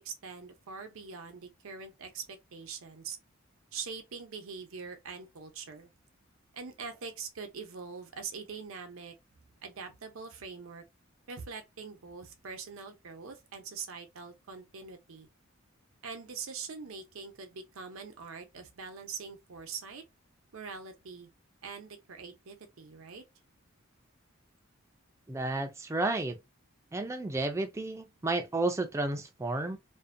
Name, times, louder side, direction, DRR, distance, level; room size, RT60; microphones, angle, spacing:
voice 1, 0.0-3.2 3.7-5.9 6.5-9.1 9.6-10.8 11.3-15.3 16.0-20.0 20.5-21.3 21.6-23.2, right 5 dB, 85° right, 0.6 m, -43 dB
voice 2, 25.3-26.4 26.9-29.8, right 2 dB, 15° right, 0.3 m, -32 dB
2.6 x 2.1 x 2.5 m
head